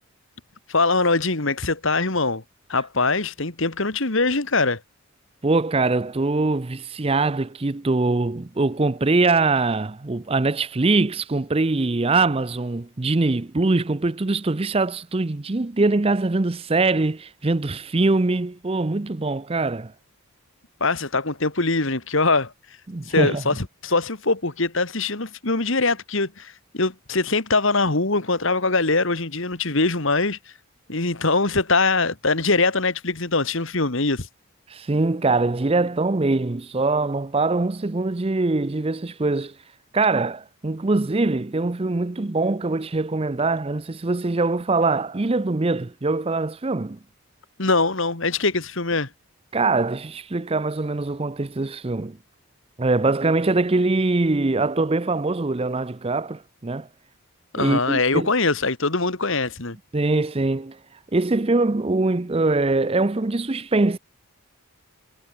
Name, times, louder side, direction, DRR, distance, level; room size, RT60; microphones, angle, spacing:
voice 1, 0.7-2.4 2.7-4.8 20.8-22.5 23.1-30.4 30.9-34.3 47.6-49.1 57.5-59.8, left 3 dB, 60° left, 2.0 m, -22 dB
voice 2, 5.4-19.9 22.9-23.4 34.7-39.6 39.9-47.0 49.5-52.2 52.8-56.9 57.6-58.3 59.9-60.8 61.1-64.0, right 3 dB, 25° right, 0.5 m, -23 dB
head